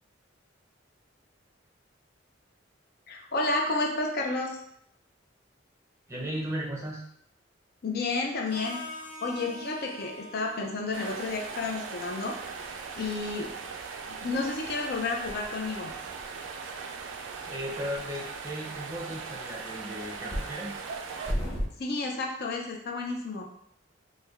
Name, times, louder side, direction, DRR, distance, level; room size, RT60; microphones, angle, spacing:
voice 1, 3.1-4.6 7.8-8.8 9.2-12.3 13.0-13.5 14.2-15.9 21.8-23.5, left 3 dB, 55° left, 1 dB, 0.5 m, -31 dB
voice 2, 6.1-7.0 17.4-20.7, equal, 15° right, -3 dB, 0.6 m, -36 dB
Harmonica, 8.5-16.4, equal, 90° left, 1.3 m, -48 dB
sound 1, 10.9-21.7, equal, 15° left, 0.8 m, -41 dB
sound 2, 10.9-21.3, right 5 dB, 85° right, 0.4 m, -39 dB
3.2 x 2.2 x 3.5 m, 0.71 s
head